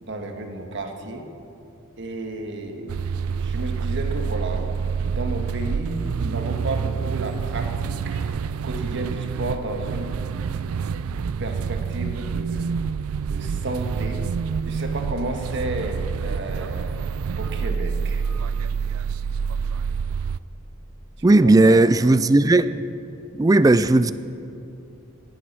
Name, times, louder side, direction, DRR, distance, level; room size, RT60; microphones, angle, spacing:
voice 1, 0.0-1.3 2.0-3.1 3.4-4.8 5.1-10.1 11.4-12.7 13.2-14.3 14.6-17.0 17.4-18.2 21.3-21.8, right 2 dB, 55° right, 4 dB, 1.5 m, -32 dB
sound 1, 2.9-20.4, right 6 dB, 85° right, 0.4 m, -27 dB
voice 2, 21.2-22.7 23.3-24.1, right 2 dB, 15° right, 14 dB, 0.3 m, -15 dB
19.0 x 9.4 x 6.2 m, 2.7 s
head